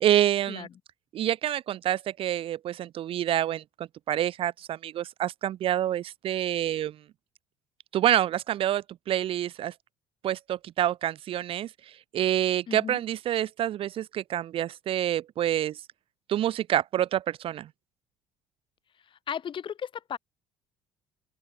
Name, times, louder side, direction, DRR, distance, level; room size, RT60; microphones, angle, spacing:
voice 1, 0.0-0.7 1.1-7.0 7.9-9.7 10.2-15.8 16.3-17.7, right 11 dB, 50° right, 0.4 m, -27 dB
voice 2, 12.7-13.0 19.1-20.2, left 8 dB, 45° left, 1.1 m, -36 dB
open air
supercardioid pair, 75°, 12 cm